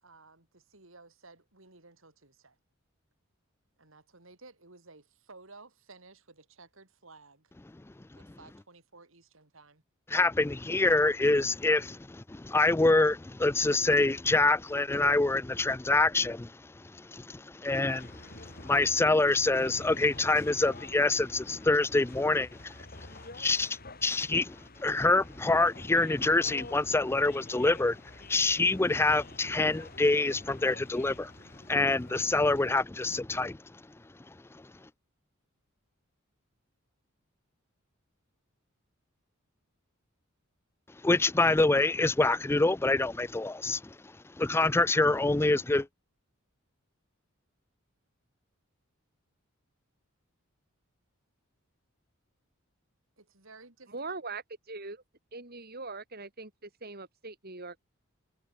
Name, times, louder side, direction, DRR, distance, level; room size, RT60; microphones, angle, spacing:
voice 1, 0.0-2.6 3.8-7.5 8.1-9.8 53.2-53.9, right 3 dB, 65° right, 3.5 m, -55 dB
voice 2, 10.1-33.6 34.5-34.6 41.0-45.9, left 2 dB, 10° left, 0.4 m, -26 dB
sound 1, 17.7-32.8, left 2 dB, 45° left, 6.0 m, -49 dB
voice 3, 53.9-55.0 55.3-57.8, right 3 dB, 45° right, 4.3 m, -41 dB
head